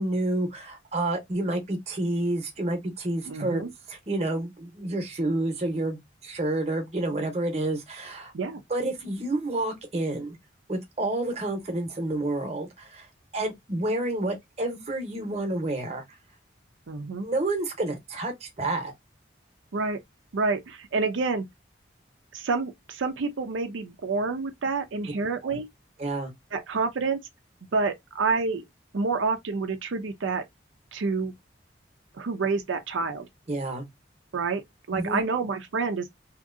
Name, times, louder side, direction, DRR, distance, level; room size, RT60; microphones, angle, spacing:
voice 1, 0.0-3.6 3.9-8.3 8.7-10.4 10.7-13.1 13.3-16.0 17.2-18.9 25.4-25.6 26.0-26.3 33.5-33.8 34.9-35.2, right 2 dB, 35° right, 0.8 m, -29 dB
voice 2, 3.3-3.7 8.3-8.6 16.9-17.3 19.7-20.0 20.3-21.4 22.3-25.7 26.5-27.2 27.7-28.6 28.9-30.4 30.9-31.3 32.1-33.3 34.3-34.6 34.9-36.1, right 4 dB, 90° right, 0.5 m, -28 dB
2.8 x 2.6 x 2.5 m
head